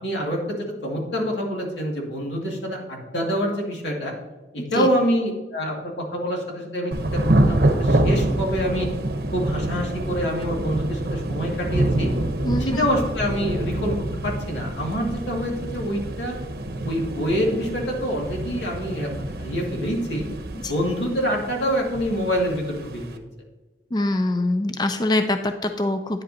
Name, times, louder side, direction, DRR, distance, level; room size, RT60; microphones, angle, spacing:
voice 1, 0.0-4.1 4.5-8.9 9.3-12.1 12.6-14.0 14.2-16.4 16.8-20.2 20.6-23.2, equal, 85° left, -1 dB, 2.1 m, -26 dB
Thunder / Rain, 6.9-23.2, right 1 dB, 60° right, 0.8 m, -26 dB
voice 2, 12.4-12.8 20.6-20.7 23.9-26.2, left 2 dB, 25° left, 7 dB, 0.4 m, -24 dB
9.7 x 7.8 x 2.7 m, 1.2 s
head